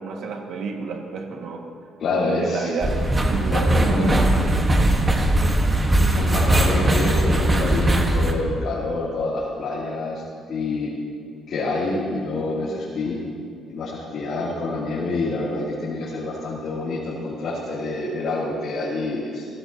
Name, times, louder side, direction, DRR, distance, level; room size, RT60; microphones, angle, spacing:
voice 1, 0.0-1.6 2.4-2.9 3.2-4.3 6.0-6.3, right 5 dB, 70° right, 1 dB, 1.9 m, -30 dB
voice 2, 2.0-2.9 3.5-4.2 6.1-10.9 11.5-13.2 13.7-19.5, left 2 dB, 55° left, -6 dB, 2.9 m, -27 dB
sound 1, 2.8-8.3, right 1 dB, 20° right, 1.4 m, -19 dB
23.0 x 15.5 x 2.9 m, 2.2 s
cardioid pair, 140°, 0 cm